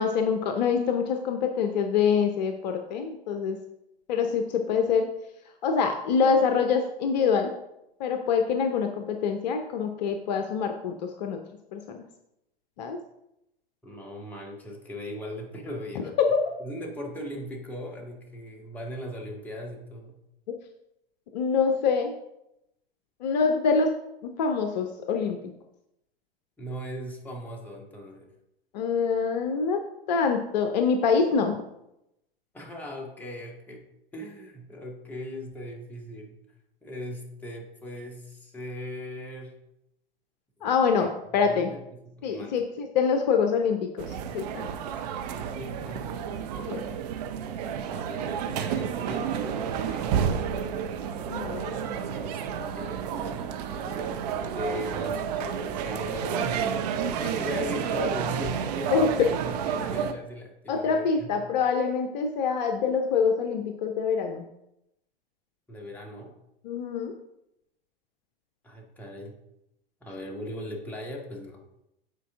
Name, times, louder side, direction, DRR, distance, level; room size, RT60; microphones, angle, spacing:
voice 1, 0.0-3.6 4.1-5.1 5.6-7.5 8.0-11.4 11.7-12.0 12.8-13.0 16.2-16.4 20.5-20.6 21.3-22.1 23.2-23.9 24.4-25.5 28.7-29.8 30.1-31.6 40.6-41.7 42.2-44.7 46.7-46.8 50.2-50.4 51.3-51.7 58.9-59.3 60.7-64.4 66.6-67.1, left 5 dB, 45° left, 5 dB, 0.7 m, -25 dB
voice 2, 13.8-16.2 16.6-20.2 26.6-28.3 32.5-33.8 34.1-36.4 36.8-39.6 40.6-41.1 41.4-42.6 45.3-46.1 46.5-47.0 47.9-50.8 52.1-56.9 57.2-61.5 65.7-66.4 68.6-69.4 70.0-71.6, left 1 dB, 5° left, -1 dB, 1.4 m, -39 dB
sound 1, 44.0-60.1, right 7 dB, 45° right, 0.7 m, -30 dB
8.4 x 4.6 x 3.5 m, 0.85 s
figure-of-eight pair, 95°, 29 cm